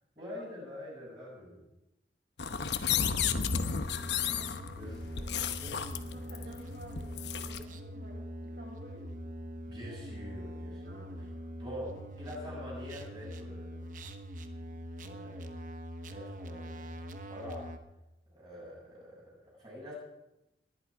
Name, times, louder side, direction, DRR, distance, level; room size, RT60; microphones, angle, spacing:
voice 1, 0.1-1.6 4.7-5.9 9.6-11.3 11.6-13.9 15.0-15.6 16.1-17.0 17.3-17.7 18.3-19.9, left 1 dB, 25° right, -4 dB, 6.8 m, -45 dB
sound 1, 2.4-7.6, left 7 dB, 80° left, 0.9 m, -33 dB
voice 2, 2.6-3.8 4.2-4.6 6.0-7.1 7.4-9.0 10.8-11.5, right 1 dB, 70° right, -1 dB, 5.8 m, -53 dB
sound 2, 3.1-17.8, equal, 45° right, 1.1 m, -43 dB
19.5 x 11.0 x 4.8 m, 0.93 s
head